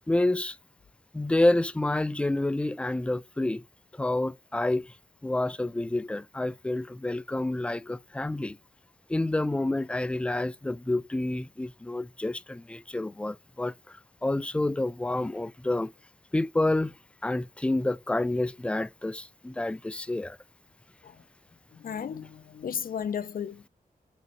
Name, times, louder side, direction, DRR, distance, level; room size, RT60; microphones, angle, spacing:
voice 1, 0.1-0.6 1.1-3.6 3.9-4.9 5.2-8.6 9.1-15.9 16.3-16.9 17.2-20.4, left 2 dB, 5° left, 0.3 m, -28 dB
voice 2, 21.7-23.7, left 8 dB, 65° left, 0.6 m, -34 dB
6.3 x 3.9 x 4.2 m
wide cardioid pair, 100°, 16 cm